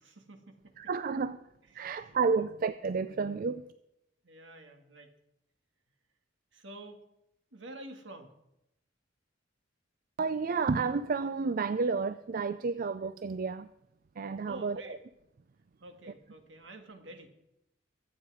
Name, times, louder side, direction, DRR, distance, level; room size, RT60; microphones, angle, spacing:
voice 1, 0.0-0.8 1.8-2.4 4.2-5.1 6.5-7.0 7.5-8.3 14.5-15.0 15.8-17.3, right 1 dB, 70° right, 2.0 m, -49 dB
voice 2, 0.8-1.4 1.7-3.7 10.2-13.7 14.2-15.0, right 4 dB, 50° right, 0.4 m, -31 dB
23.5 x 8.8 x 4.9 m
head